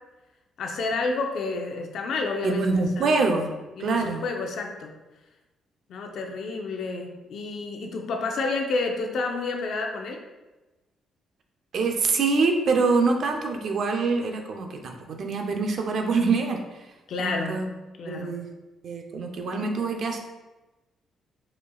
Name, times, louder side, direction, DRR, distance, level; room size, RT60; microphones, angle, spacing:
voice 1, 0.6-2.6 3.0-3.1 3.8-5.0 5.9-10.2 17.1-17.7 18.0-18.3, left 3 dB, 70° left, 3 dB, 0.7 m, -30 dB
voice 2, 2.4-3.5 3.8-4.2 11.7-16.9 17.2-17.7 18.1-18.5 18.8-20.2, right 4 dB, 60° right, 3 dB, 0.6 m, -25 dB
4.8 x 4.4 x 2.3 m, 1.1 s
cardioid pair, 90°, 0 cm